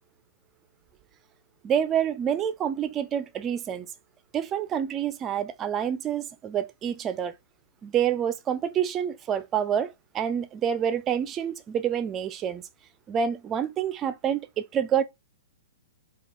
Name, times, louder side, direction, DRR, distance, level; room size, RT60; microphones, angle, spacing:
voice 1, 1.6-3.9 4.3-7.3 7.8-12.6 13.1-15.0, right 8 dB, 25° right, 0.5 m, -27 dB
4.7 x 2.4 x 3.7 m
figure-of-eight pair, 120°, 0 cm